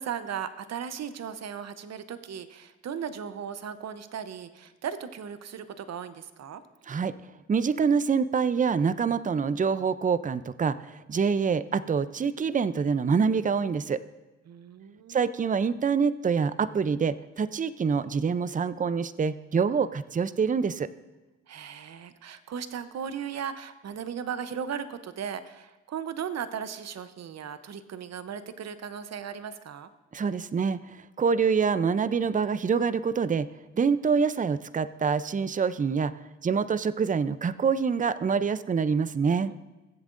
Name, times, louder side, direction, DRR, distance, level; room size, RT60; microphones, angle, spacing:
voice 1, 0.0-6.6 14.5-15.3 21.5-29.9 39.3-39.5, right 8 dB, 60° right, 12 dB, 0.8 m, -37 dB
voice 2, 7.5-14.0 15.1-20.9 30.1-33.5 33.7-36.1 36.4-39.5, right 5 dB, 25° right, 15 dB, 0.5 m, -26 dB
21.0 x 7.9 x 2.6 m, 1.1 s
supercardioid pair, 55°, 29 cm